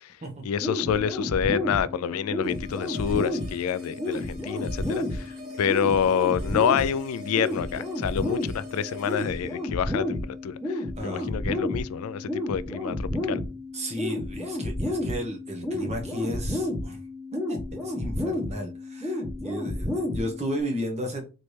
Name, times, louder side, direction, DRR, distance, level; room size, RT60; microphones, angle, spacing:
voice 1, 0.4-5.3 5.6-13.4, left 8 dB, 70° left, 0.3 m, -27 dB
sound 1, 0.6-20.6, left 1 dB, 10° right, 1.5 m, -31 dB
sound 2, 2.4-11.5, equal, 50° right, 2.0 m, -46 dB
voice 2, 11.0-11.3 13.7-17.0 17.3-21.3, equal, 30° right, 1.1 m, -34 dB
4.0 x 3.2 x 3.3 m
head